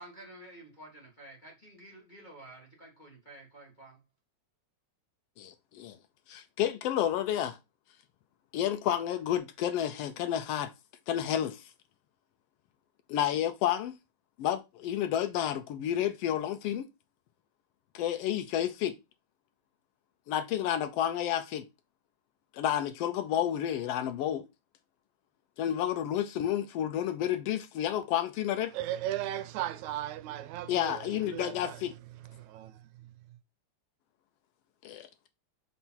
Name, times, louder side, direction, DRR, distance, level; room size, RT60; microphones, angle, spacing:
voice 1, 0.0-4.0, right 1 dB, 30° left, 0.9 m, -51 dB
voice 2, 5.4-6.0 6.3-7.6 8.5-10.7 11.1-11.6 13.1-14.0 14.4-16.9 17.9-18.9 20.3-21.6 22.5-24.4 25.6-28.7 30.7-31.9 34.8-35.1, left 11 dB, 80° left, 1.4 m, -30 dB
voice 3, 28.7-31.8 32.3-32.8, right 13 dB, 80° right, 1.9 m, -36 dB
5.6 x 4.1 x 4.3 m
omnidirectional pair, 3.4 m